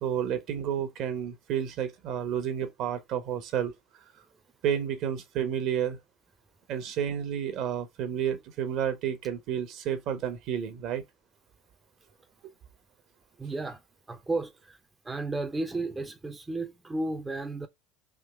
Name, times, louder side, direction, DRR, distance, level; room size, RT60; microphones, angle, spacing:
voice 1, 0.0-3.7 4.6-6.0 6.7-11.0, right 9 dB, 55° right, 1.1 m, -30 dB
voice 2, 13.4-13.8 14.1-14.8 15.0-17.7, right 2 dB, 15° right, 0.7 m, -33 dB
3.7 x 3.1 x 4.3 m
hypercardioid pair, 75°, 0 cm